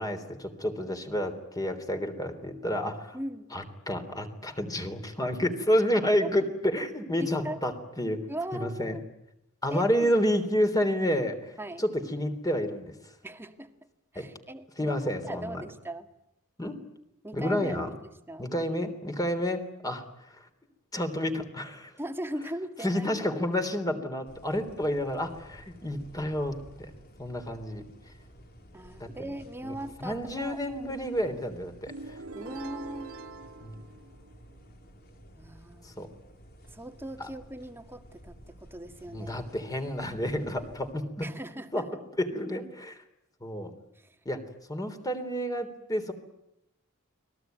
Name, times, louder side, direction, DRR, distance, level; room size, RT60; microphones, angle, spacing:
voice 1, 0.0-3.2 3.5-8.2 8.5-9.0 9.6-13.1 14.2-14.3 14.8-15.6 16.6-16.8 17.3-17.9 18.4-20.5 20.9-21.9 22.8-26.9 27.2-27.9 29.0-29.3 29.6-29.7 30.0-32.2 33.6-33.8 35.8-36.1 37.2-37.3 39.1-41.3 41.7-41.9 42.2-43.0 43.4-43.7 44.3-44.4 44.7-46.1, equal, 15° left, 7 dB, 3.5 m, -30 dB
voice 2, 3.1-3.5 6.2-6.3 7.2-7.6 8.3-9.0 9.7-10.1 11.6-11.8 13.2-13.7 14.1-15.0 15.2-16.1 17.2-18.5 22.0-23.1 28.7-30.6 32.3-33.2 35.4-36.0 36.7-39.3 41.2-41.9 44.0-44.2, right 1 dB, 10° right, 6 dB, 1.9 m, -39 dB
sound 1, 24.3-40.9, equal, 45° left, 3.5 m, -53 dB
sound 2, 31.9-34.7, right 3 dB, 80° right, 2.2 m, -43 dB
30.0 x 21.5 x 9.3 m, 0.87 s
head